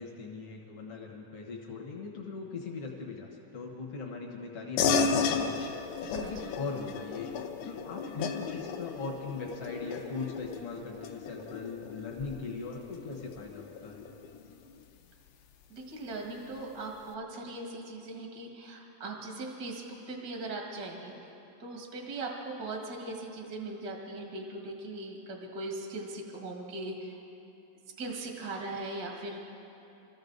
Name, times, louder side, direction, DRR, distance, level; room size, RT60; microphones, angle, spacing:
voice 1, 0.0-5.5 6.0-14.1, left 4 dB, 75° left, 0 dB, 1.3 m, -40 dB
sound 1, 4.8-14.6, left 5 dB, 90° left, 1.7 m, -34 dB
voice 2, 6.1-6.4 15.7-21.3 21.6-27.2 28.0-29.4, right 2 dB, 75° right, 0 dB, 0.8 m, -39 dB
26.0 x 14.0 x 4.0 m, 3.0 s
omnidirectional pair, 4.8 m